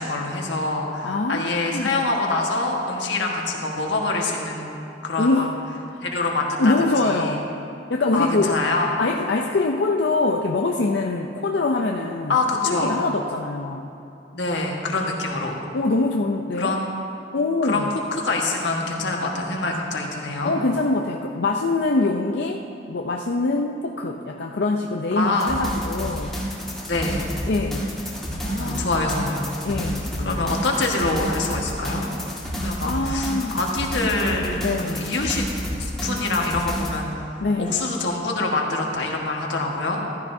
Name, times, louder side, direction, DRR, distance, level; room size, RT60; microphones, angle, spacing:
voice 1, 0.0-5.4 6.0-7.4 8.1-8.9 12.3-13.0 14.3-15.6 16.6-17.0 17.6-17.9 18.1-20.5 25.1-25.5 26.8-27.3 28.3-29.5 30.2-32.1 32.6-35.4 35.8-40.0, left 2 dB, 85° left, 0 dB, 1.5 m, -25 dB
voice 2, 1.0-2.1 5.2-5.5 5.9-6.0 6.6-7.5 7.9-8.6 9.0-12.4 12.6-13.9 15.7-16.8 17.3-17.9 20.4-26.4 27.5-28.0 28.6-28.9 29.6-30.5 32.3-32.4 32.8-33.6 34.6-35.1 37.4-37.9, left 3 dB, 65° left, 1 dB, 0.5 m, -24 dB
sound 1, 25.4-37.0, equal, ahead, 1.8 m, -30 dB
14.5 x 12.5 x 2.7 m, 2.7 s
head